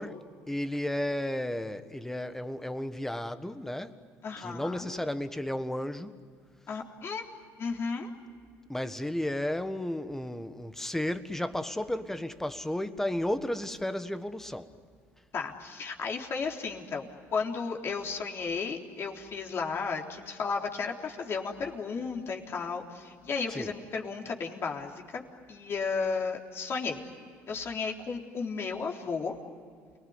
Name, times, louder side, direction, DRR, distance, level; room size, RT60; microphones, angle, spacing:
voice 1, 0.0-4.0 4.4-6.1 8.7-14.7 23.5-23.7, left 1 dB, 5° left, 1.4 m, -33 dB
voice 2, 4.2-4.9 6.7-7.3 7.6-8.1 15.3-25.2 25.5-27.1 27.5-29.4, left 5 dB, 45° left, 3.8 m, -34 dB
29.5 x 20.5 x 9.8 m
supercardioid pair, 95°, 6 cm